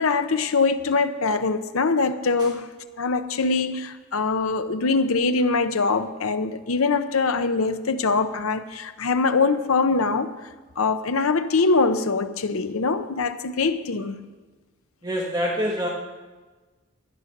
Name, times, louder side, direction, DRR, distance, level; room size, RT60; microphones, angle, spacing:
voice 1, 0.0-10.3 10.8-14.3, left 4 dB, 85° left, 0.8 m, -23 dB
voice 2, 15.0-15.9, equal, 20° right, 1.2 m, -25 dB
11.5 x 9.7 x 6.6 m
head